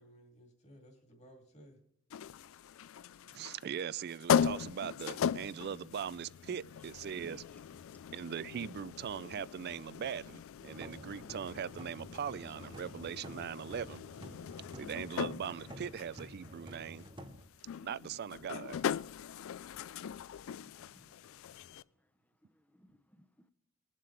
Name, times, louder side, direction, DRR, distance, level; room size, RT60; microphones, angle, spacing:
voice 1, 0.0-1.8 20.9-21.2, equal, 30° left, 2.6 m, -58 dB
sound 1, 2.1-21.8, left 8 dB, 65° left, 0.3 m, -39 dB
voice 2, 3.3-7.4 8.1-14.0 14.7-17.1 17.8-18.8, right 8 dB, 50° right, 0.3 m, -40 dB
sound 2, 10.7-17.4, equal, 20° right, 0.8 m, -51 dB
voice 3, 14.2-14.9 20.6-21.1 22.5-23.2, left 1 dB, 5° left, 0.7 m, -59 dB
21.0 x 7.6 x 3.3 m
head